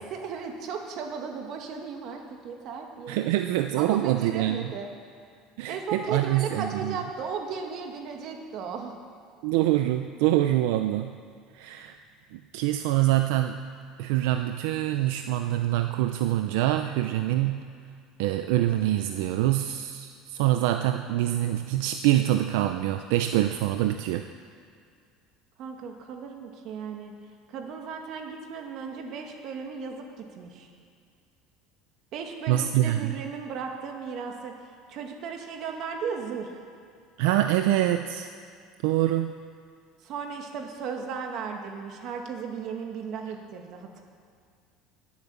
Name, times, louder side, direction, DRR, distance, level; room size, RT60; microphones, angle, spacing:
voice 1, 0.0-3.2 3.8-4.9 5.7-8.9 25.6-27.1 27.5-30.7 32.1-36.6 40.0-44.0, right 6 dB, 50° right, 3 dB, 2.1 m, -36 dB
voice 2, 3.1-4.7 5.6-7.0 9.4-11.2 11.5-12.0 12.3-13.6 14.0-17.7 18.2-24.3 32.5-33.1 37.2-38.3 38.8-39.4, right 13 dB, 80° right, 7 dB, 0.6 m, -25 dB
20.0 x 8.5 x 7.2 m, 2.3 s
cardioid pair, 140°, 0 cm